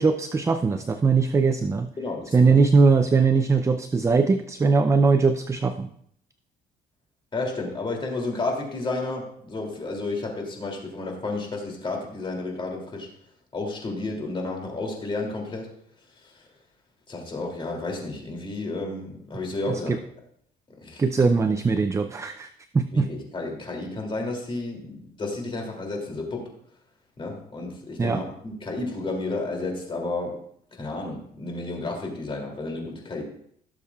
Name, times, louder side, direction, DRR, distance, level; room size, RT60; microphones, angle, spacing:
voice 1, 0.0-1.9 2.3-5.9 19.7-20.0 21.0-22.5 22.7-23.1 28.0-28.2, right 4 dB, 15° right, 10 dB, 0.4 m, -20 dB
voice 2, 2.0-2.6 7.3-13.1 13.5-15.7 17.1-19.9 20.8-21.0 22.9-26.4 27.2-30.3 30.7-33.2, left 2 dB, 30° left, 0 dB, 2.8 m, -31 dB
17.0 x 6.9 x 2.4 m, 0.67 s
cardioid pair, 110°, 17 cm